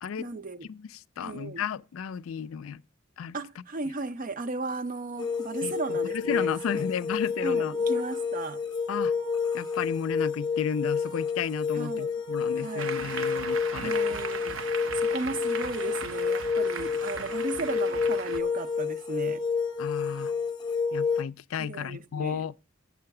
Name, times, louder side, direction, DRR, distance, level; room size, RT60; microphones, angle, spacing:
voice 1, 0.2-0.7 1.2-1.7 3.3-6.9 7.4-8.6 11.7-12.1 12.6-13.0 13.8-14.6 14.9-19.4 21.6-22.4, right 3 dB, 40° right, 0.5 m, -36 dB
voice 2, 0.7-2.8 3.2-3.4 5.6-7.7 8.9-9.1 9.5-14.0 19.8-20.3 20.9-22.5, left 7 dB, 80° left, 0.4 m, -33 dB
sound 1, 5.2-21.2, left 5 dB, 20° left, 0.6 m, -29 dB
Applause, 12.8-18.4, right 5 dB, 75° right, 0.9 m, -37 dB
7.6 x 7.2 x 5.8 m
head